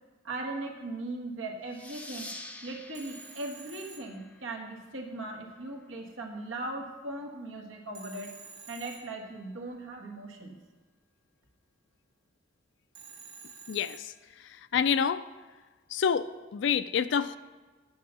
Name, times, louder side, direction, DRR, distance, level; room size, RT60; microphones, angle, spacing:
voice 1, 0.2-2.3 2.6-8.3 8.7-10.6, right 2 dB, 90° right, 1 dB, 1.4 m, -39 dB
sound 1, 1.7-4.9, left 2 dB, 5° left, 0.5 m, -47 dB
Telephone, 2.9-4.9 7.9-9.7 12.9-14.6, right 4 dB, 60° right, 1.6 m, -50 dB
voice 2, 13.7-15.3 15.9-17.4, left 7 dB, 65° left, 14 dB, 0.4 m, -28 dB
8.6 x 5.5 x 6.8 m, 1.4 s
head